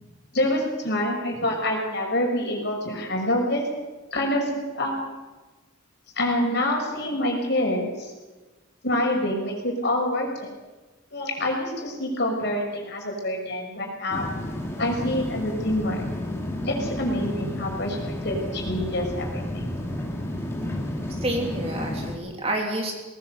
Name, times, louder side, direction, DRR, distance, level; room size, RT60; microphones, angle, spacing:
voice 1, 0.3-3.6 4.1-5.0 6.2-8.1 8.8-10.5 11.1-14.3 14.8-16.0 16.6-19.8, left 1 dB, 50° left, 1 dB, 5.8 m, -26 dB
sound 1, 14.1-22.1, left 1 dB, 10° left, 2.4 m, -31 dB
voice 2, 21.2-22.9, right 1 dB, 30° right, 0 dB, 3.3 m, -28 dB
19.0 x 18.5 x 8.2 m, 1.2 s
head